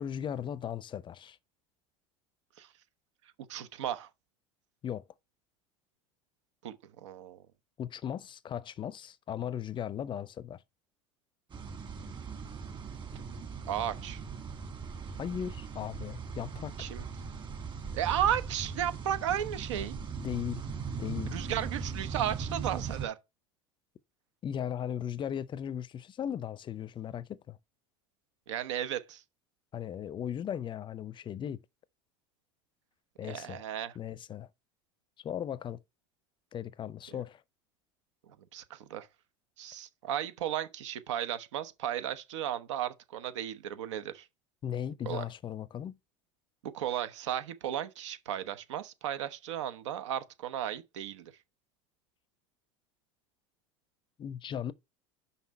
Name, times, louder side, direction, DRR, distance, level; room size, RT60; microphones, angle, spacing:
voice 1, 0.0-1.4 4.8-5.0 7.8-10.6 13.9-14.0 15.2-16.7 20.2-20.6 21.0-21.4 24.4-27.6 29.7-31.6 33.2-33.6 34.0-34.5 35.2-35.8 36.5-37.4 44.6-46.0 54.2-54.7, left 9 dB, 30° left, 0.5 m, -37 dB
voice 2, 3.5-4.1 6.6-7.4 13.1-13.2 13.7-14.2 16.8-17.0 17.9-19.9 21.3-23.2 28.5-29.2 33.2-33.9 37.1-37.2 38.3-39.1 39.6-44.3 45.0-45.2 46.6-51.3, right 10 dB, 80° right, 0.9 m, -34 dB
sound 1, 11.5-23.0, right 5 dB, 30° right, 1.7 m, -39 dB
5.8 x 5.5 x 4.3 m
hypercardioid pair, 90°, 15 cm